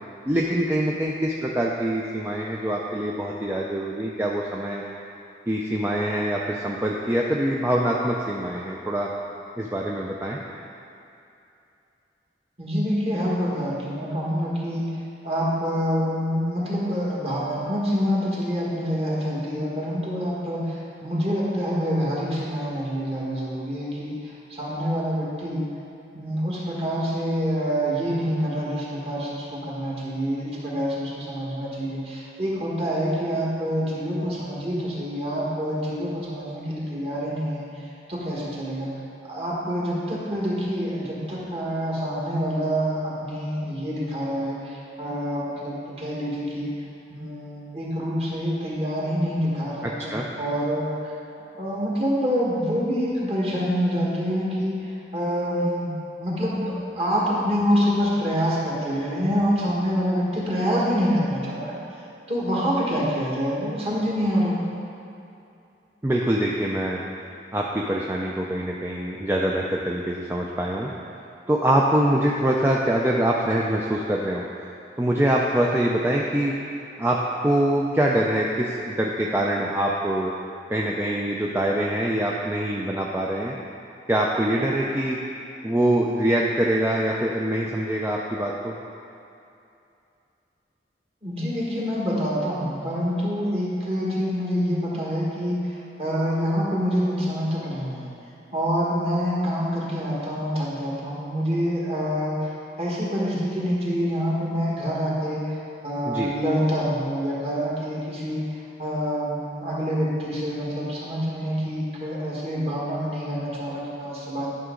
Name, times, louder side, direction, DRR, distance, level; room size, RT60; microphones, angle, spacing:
voice 1, 0.2-4.8 5.5-9.1 9.6-10.4 49.8-50.2 66.0-67.0 67.5-70.9 71.5-74.4 75.0-76.5 77.0-80.3 80.7-83.5 84.1-85.2 85.6-88.8 106.0-106.3, right 1 dB, 15° right, -3 dB, 0.4 m, -24 dB
voice 2, 12.6-15.0 15.2-25.7 26.1-38.9 39.2-46.7 47.1-50.1 50.4-51.1 51.6-61.8 62.3-64.6 91.2-98.1 98.5-114.5, equal, 35° right, -5 dB, 1.6 m, -26 dB
11.0 x 6.0 x 3.8 m, 2.7 s
head